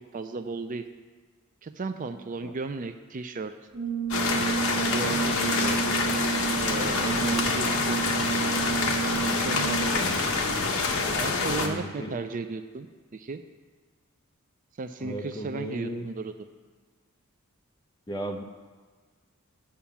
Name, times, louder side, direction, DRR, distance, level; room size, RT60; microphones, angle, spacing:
voice 1, 0.1-0.8 1.6-3.5 4.8-5.8 6.6-8.0 9.2-10.2 11.1-12.9 13.1-13.4 14.8-16.3, right 4 dB, 35° right, 9 dB, 0.4 m, -35 dB
Brass instrument, 3.7-10.1, right 7 dB, 75° right, 1.5 m, -31 dB
sound 1, 4.1-11.7, left 4 dB, 65° left, 1.0 m, -26 dB
voice 2, 11.5-12.1 15.0-16.1 18.1-18.4, right 1 dB, 20° left, 3 dB, 0.8 m, -35 dB
8.7 x 5.7 x 7.0 m, 1.5 s
head